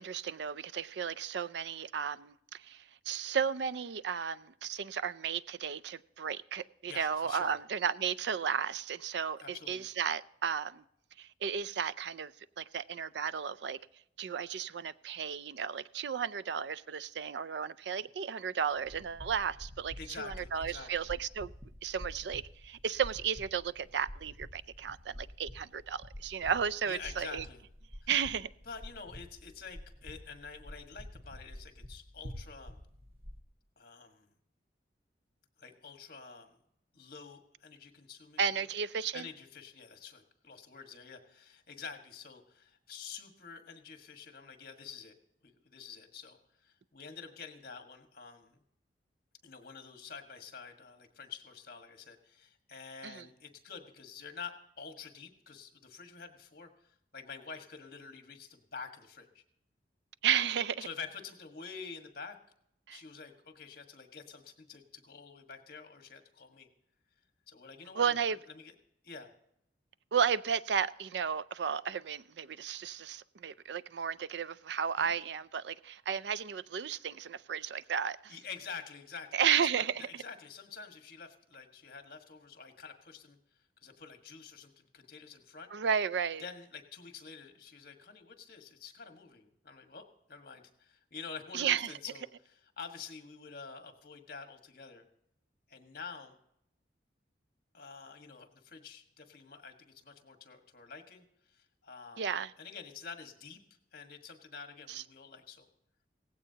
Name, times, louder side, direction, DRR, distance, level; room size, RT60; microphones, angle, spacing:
voice 1, 0.0-10.8 11.2-13.8 14.2-21.5 21.8-27.4 28.1-28.5 38.4-39.3 53.0-53.2 60.2-60.9 62.9-63.0 68.0-68.4 70.1-78.4 79.3-80.2 85.7-86.4 91.5-91.9 102.2-102.5 104.9-105.0, right 7 dB, 70° right, 0.4 m, -33 dB
voice 2, 6.9-7.6 9.4-9.9 20.0-21.1 26.8-27.6 28.0-28.1 28.6-32.8 33.8-34.3 35.6-36.6 36.9-38.4 39.1-45.1 45.4-48.6 49.4-59.4 60.8-62.4 62.9-66.7 67.5-68.2 68.5-68.7 69.0-69.3 75.0-75.1 78.3-83.4 83.8-85.7 86.4-95.1 95.7-96.3 97.7-103.6 103.9-105.7, left 5 dB, 55° left, 1.6 m, -48 dB
sound 1, 18.7-33.4, left 1 dB, 35° right, 1.4 m, -49 dB
17.5 x 16.0 x 2.8 m
head